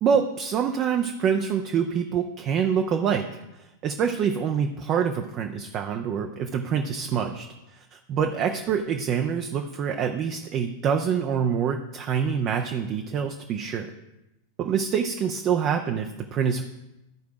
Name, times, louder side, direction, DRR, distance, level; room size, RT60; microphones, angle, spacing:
voice 1, 0.0-13.9 14.6-16.6, right 7 dB, 35° right, 4 dB, 0.7 m, -26 dB
13.5 x 4.6 x 4.9 m, 0.95 s
figure-of-eight pair, 90°, 0 cm